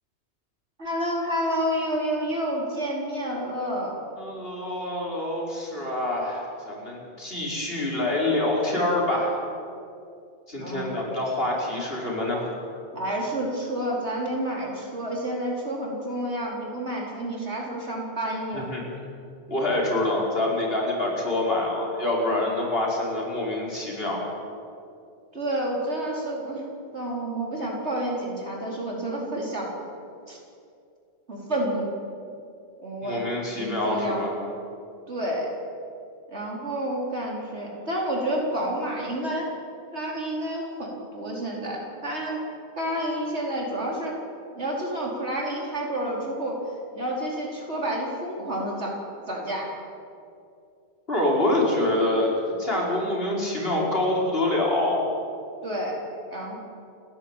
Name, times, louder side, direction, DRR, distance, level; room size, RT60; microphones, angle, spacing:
voice 1, 0.8-4.0 10.6-10.9 12.9-18.7 25.3-26.7 26.9-29.7 30.3-30.4 31.3-31.9 32.8-33.2 33.5-34.2 35.1-35.5 36.3-39.5 39.9-42.4 42.8-44.1 44.5-46.6 46.9-48.9 49.3-49.7 55.6-56.6, right 1 dB, 80° right, -2 dB, 4.8 m, -29 dB
voice 2, 4.2-9.4 10.5-12.5 18.5-18.8 19.5-24.2 33.0-34.4 51.1-52.3 52.6-55.0, left 1 dB, 60° left, -3 dB, 5.3 m, -26 dB
29.0 x 11.0 x 9.1 m, 2.5 s
omnidirectional pair, 1.1 m